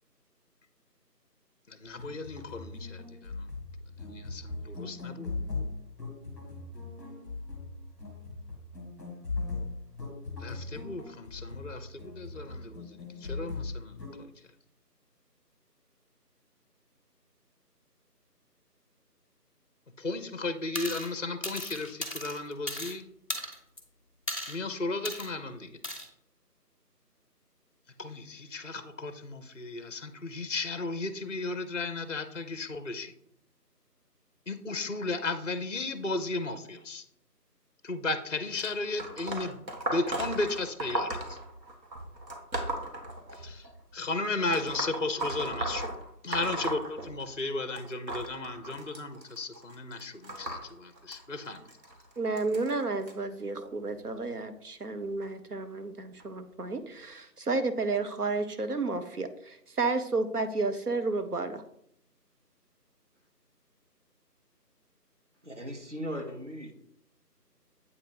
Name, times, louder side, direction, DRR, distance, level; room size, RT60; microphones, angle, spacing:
voice 1, 1.7-3.5 4.1-5.3 10.4-14.3 20.0-23.1 24.5-25.8 28.0-33.1 34.5-37.0 37.8-39.6 39.9-41.4 43.3-45.9 46.2-51.7, left 3 dB, 50° left, 10 dB, 0.5 m, -35 dB
sound 1, 1.9-14.2, left 3 dB, ahead, 1.1 m, -39 dB
sound 2, 20.7-21.1 21.4-22.9 23.3-23.8 24.3-24.6 25.0-25.3 25.8-26.1, equal, 30° left, 1.1 m, -36 dB
sound 3, 38.6-43.7 44.5-47.5 47.8-53.1 53.9-54.2 55.2-55.3 56.2-56.3 57.0-57.1, right 1 dB, 90° right, 1.8 m, -36 dB
voice 2, 52.2-61.6, right 3 dB, 65° right, 9 dB, 0.9 m, -31 dB
voice 3, 65.4-66.7, equal, 45° right, 3 dB, 1.2 m, -38 dB
8.2 x 2.9 x 5.3 m, 0.72 s
figure-of-eight pair, 170°, 49 cm